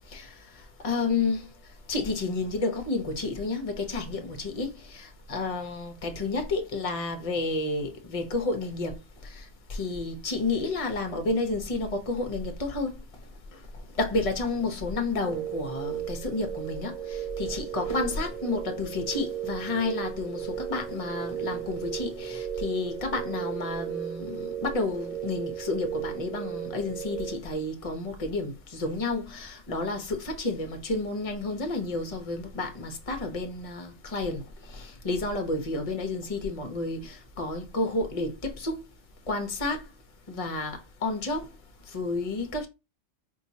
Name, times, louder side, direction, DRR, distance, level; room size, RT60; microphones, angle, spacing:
voice 1, 0.8-1.5 1.9-9.0 9.2-9.3 9.7-12.9 14.0-34.4 34.7-38.8 39.3-39.8 40.3-41.5 41.9-42.7, left 3 dB, 35° left, 0.9 m, -31 dB
sound 1, 15.2-27.4, right 9 dB, 40° right, 1.4 m, -35 dB
4.7 x 2.9 x 2.8 m
omnidirectional pair, 1.2 m